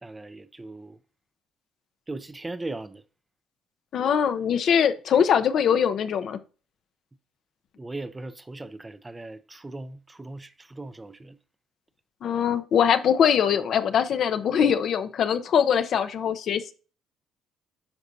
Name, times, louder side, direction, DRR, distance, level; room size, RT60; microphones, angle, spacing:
voice 1, 0.0-1.0 2.1-3.0 7.8-11.4, right 2 dB, 15° right, 0.6 m, -38 dB
voice 2, 3.9-6.4 12.2-16.7, left 8 dB, 60° left, 0.7 m, -22 dB
9.8 x 5.2 x 2.8 m
cardioid pair, 95°, 0 cm